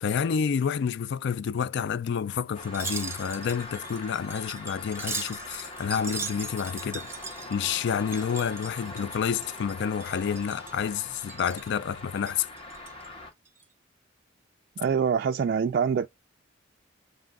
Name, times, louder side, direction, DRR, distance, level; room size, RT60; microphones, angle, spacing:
voice 1, 0.0-7.1 7.5-12.5, left 7 dB, 65° left, 0.4 m, -29 dB
sound 1, 2.5-13.3, left 2 dB, 30° left, 1.5 m, -43 dB
Wind chime, 2.6-9.7 10.0-10.8 11.2-11.7 12.2-13.1 13.5-13.6, right 4 dB, 15° right, 1.0 m, -39 dB
voice 2, 14.8-16.1, right 6 dB, 55° right, 0.3 m, -25 dB
7.4 x 2.6 x 2.5 m
head